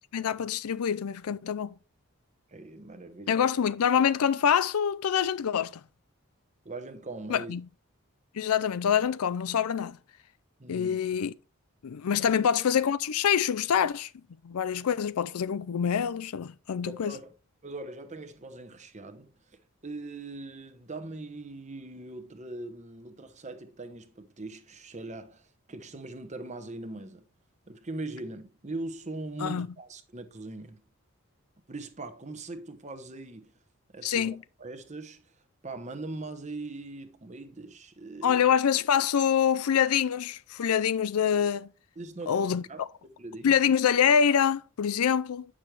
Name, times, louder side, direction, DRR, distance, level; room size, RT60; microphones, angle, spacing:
voice 1, 0.1-1.7 3.3-5.8 7.3-7.6 8.3-10.0 10.7-11.3 11.8-14.1 14.4-17.2 29.4-29.7 34.0-34.4 38.2-41.7 42.3-42.6 43.4-45.5, left 8 dB, 85° left, 0.4 m, -25 dB
voice 2, 2.5-3.5 6.6-7.5 10.6-11.0 12.2-12.3 16.8-17.3 17.6-27.2 27.7-30.8 31.7-33.5 33.9-35.4 35.6-38.4 42.0-43.5, right 2 dB, 30° right, 0.9 m, -41 dB
9.0 x 6.3 x 3.2 m
head